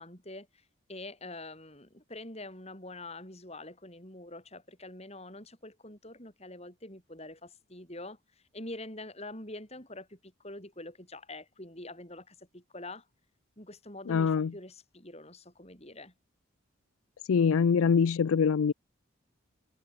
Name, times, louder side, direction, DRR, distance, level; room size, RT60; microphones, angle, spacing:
voice 1, 0.0-13.0 13.6-16.1, left 2 dB, 30° left, 6.8 m, -45 dB
voice 2, 14.1-14.5 17.3-18.7, left 6 dB, 75° left, 0.4 m, -24 dB
head